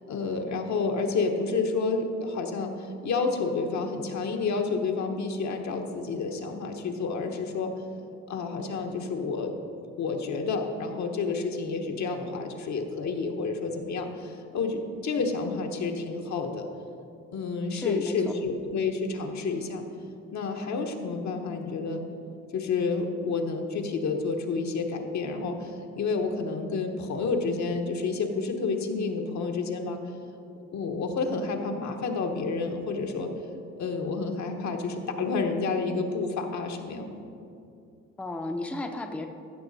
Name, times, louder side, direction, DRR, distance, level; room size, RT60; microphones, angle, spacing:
voice 1, 0.1-7.7 8.3-9.5 10.0-16.7 17.3-19.8 20.3-22.0 22.5-30.0 30.5-33.3 33.8-37.2, left 4 dB, 70° left, 4 dB, 1.1 m, -30 dB
voice 2, 17.7-18.3 38.2-39.3, left 2 dB, 5° left, 4 dB, 0.5 m, -34 dB
14.5 x 6.4 x 4.1 m, 2.6 s
cardioid pair, 130°, 30 cm